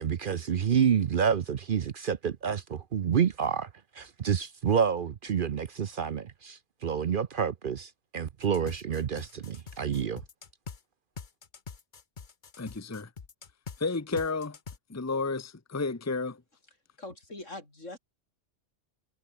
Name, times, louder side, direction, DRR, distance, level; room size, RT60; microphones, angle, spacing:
voice 1, 0.0-3.7 4.0-10.2, right 7 dB, 50° right, 0.8 m, -28 dB
sound 1, 8.4-10.8 11.2-13.8 14.2-14.8, left 5 dB, 45° left, 1.2 m, -44 dB
voice 2, 12.6-13.1 13.8-14.6 14.9-16.4, left 3 dB, 15° left, 1.0 m, -31 dB
voice 3, 17.0-18.0, left 2 dB, 80° left, 6.4 m, -42 dB
omnidirectional pair, 1.3 m